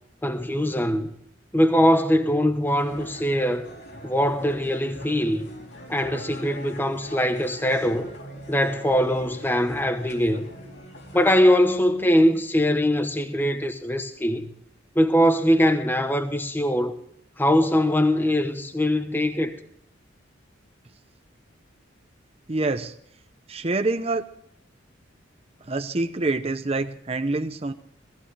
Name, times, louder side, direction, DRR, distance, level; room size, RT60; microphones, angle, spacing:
voice 1, 0.2-1.1 1.5-3.7 4.0-5.5 5.9-8.1 8.5-10.5 11.1-14.5 14.9-17.0 17.4-19.6, equal, 10° left, 1.0 m, -22 dB
sound 1, 2.8-11.4, equal, 60° left, 2.5 m, -42 dB
voice 2, 22.5-22.9 23.5-24.3 25.6-27.7, right 2 dB, 30° right, 0.7 m, -26 dB
18.0 x 15.0 x 3.3 m
head